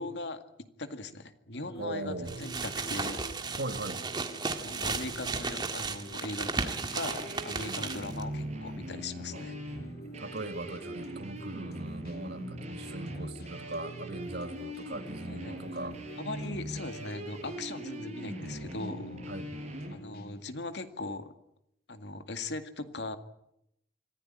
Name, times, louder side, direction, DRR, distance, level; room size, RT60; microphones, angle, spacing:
voice 1, 0.0-3.6 4.5-9.5 12.8-13.0 15.3-15.8 16.2-19.2 19.9-21.3 21.9-23.2, left 2 dB, 80° left, 9 dB, 2.1 m, -40 dB
sound 1, 1.5-20.4, right 1 dB, 60° left, 3.0 m, -48 dB
voice 2, 1.8-2.4 3.5-4.0 8.0-8.3 9.3-9.6 10.2-16.0 19.3-19.5, right 2 dB, 65° right, 9 dB, 1.8 m, -40 dB
sound 2, 2.3-8.2, right 4 dB, 25° right, 1.8 m, -35 dB
sound 3, 6.9-20.0, right 1 dB, 40° right, 5.4 m, -41 dB
25.5 x 15.5 x 9.9 m, 0.80 s
head